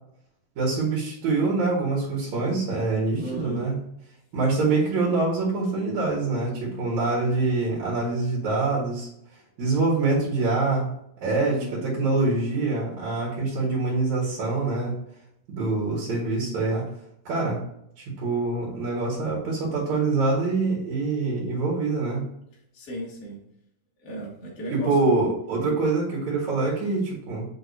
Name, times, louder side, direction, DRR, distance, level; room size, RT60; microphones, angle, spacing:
voice 1, 0.6-3.8 4.3-9.1 9.6-10.9 11.2-15.0 15.5-16.9 17.2-17.6 18.0-22.2 24.7-27.5, right 3 dB, 65° right, -4 dB, 3.0 m, -25 dB
voice 2, 3.2-3.7 11.4-11.8 22.7-23.4 24.0-25.2, right 1 dB, 35° left, -3 dB, 2.0 m, -35 dB
6.7 x 5.7 x 2.8 m, 0.76 s
omnidirectional pair, 3.5 m